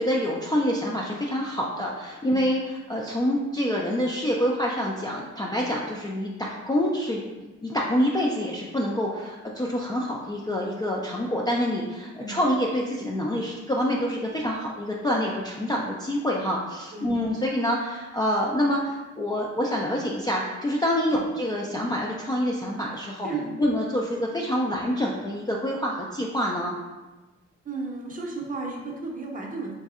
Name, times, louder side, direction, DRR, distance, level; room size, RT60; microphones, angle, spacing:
voice 1, 0.0-7.3 7.6-23.3 23.6-26.7, equal, 15° left, -3 dB, 0.3 m, -26 dB
voice 2, 23.2-23.6 27.6-29.7, right 3 dB, 25° right, -1 dB, 0.7 m, -34 dB
4.1 x 2.6 x 2.4 m, 1.2 s
cardioid pair, 90°, 30 cm